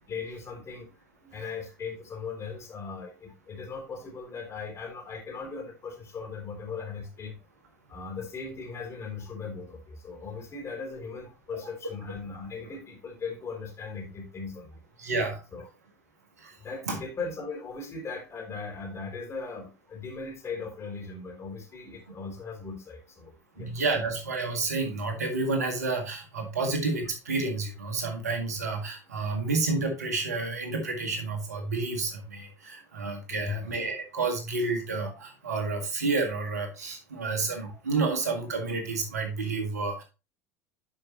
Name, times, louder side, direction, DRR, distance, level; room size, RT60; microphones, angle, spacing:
voice 1, 0.1-0.9 1.2-7.4 7.9-14.8 15.5-15.7 16.6-23.7 33.3-33.7 37.2-37.3, left 4 dB, 30° left, 2 dB, 3.3 m, -38 dB
voice 2, 15.0-15.4 16.4-16.6 16.9-17.0 23.6-40.0, right 3 dB, 80° right, 4 dB, 1.8 m, -30 dB
11.0 x 5.3 x 2.9 m, 0.29 s
figure-of-eight pair, 70°, 9 cm